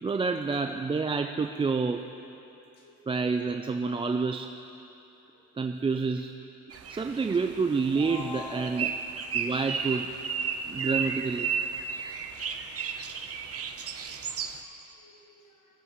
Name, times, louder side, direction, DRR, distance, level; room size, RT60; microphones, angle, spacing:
voice 1, 0.0-2.0 3.1-4.5 5.6-6.3 6.9-8.9 9.3-10.1 10.7-11.5, right 4 dB, 15° right, 5 dB, 0.4 m, -28 dB
sound 1, 6.7-14.6, right 6 dB, 45° right, 0.8 m, -33 dB
voice 2, 7.9-8.8 12.0-12.1 14.3-15.5, left 5 dB, 70° left, 0 dB, 1.9 m, -45 dB
19.5 x 7.9 x 3.1 m, 2.9 s
cardioid pair, 80°, 32 cm